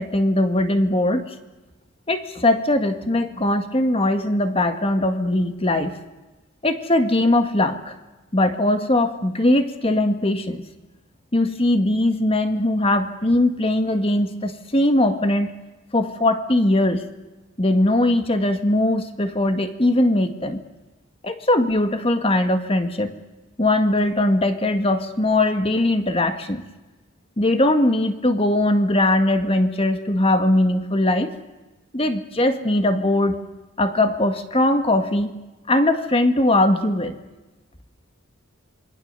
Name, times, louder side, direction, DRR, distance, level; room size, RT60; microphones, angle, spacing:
voice 1, 0.0-1.3 2.1-6.0 6.6-7.9 8.3-10.6 11.3-15.5 15.9-17.0 17.6-20.6 21.2-23.1 23.6-26.6 27.4-31.3 31.9-33.3 33.8-35.3 35.7-37.2, left 1 dB, 30° left, 8 dB, 1.7 m, -20 dB
27.0 x 22.5 x 6.8 m, 1.1 s
head